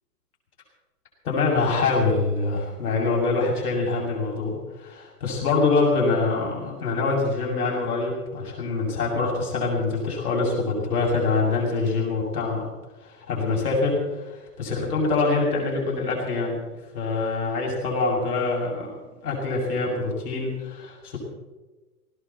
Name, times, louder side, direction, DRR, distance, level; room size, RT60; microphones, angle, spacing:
voice 1, 1.2-12.7 13.0-16.6 16.9-18.9 19.2-21.2, left 3 dB, 80° left, -2 dB, 7.0 m, -25 dB
18.5 x 18.5 x 4.2 m, 1.1 s
hypercardioid pair, 155°, 45 cm